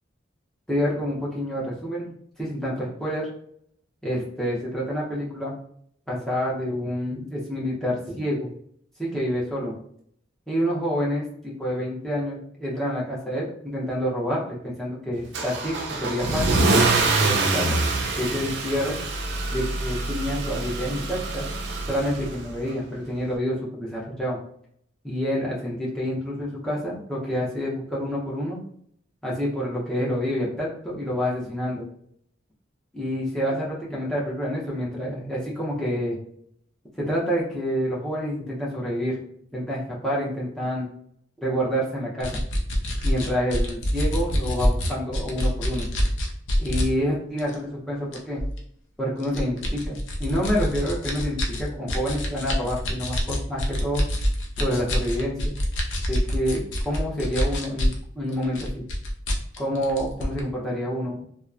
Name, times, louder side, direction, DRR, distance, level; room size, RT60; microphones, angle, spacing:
voice 1, 0.7-2.1 2.4-3.3 4.0-5.5 6.1-8.5 9.0-9.7 10.5-16.6 17.2-17.8 18.1-19.0 19.5-21.5 21.9-24.4 25.0-28.6 29.2-31.9 32.9-36.2 37.0-39.2 39.5-40.9 41.4-42.4 43.0-45.9 46.6-48.4 49.0-54.0 54.6-55.5 56.1-58.8 59.6-61.2, equal, 5° left, -6 dB, 0.6 m, -28 dB
Car / Engine starting / Accelerating revving vroom, 15.3-22.5, right 3 dB, 65° right, 0.4 m, -25 dB
sound 1, 42.2-46.9 47.4-47.5 48.1-48.6 49.2-58.0 58.3-60.4, equal, 85° left, 0.5 m, -26 dB
2.8 x 2.1 x 2.3 m, 0.66 s
head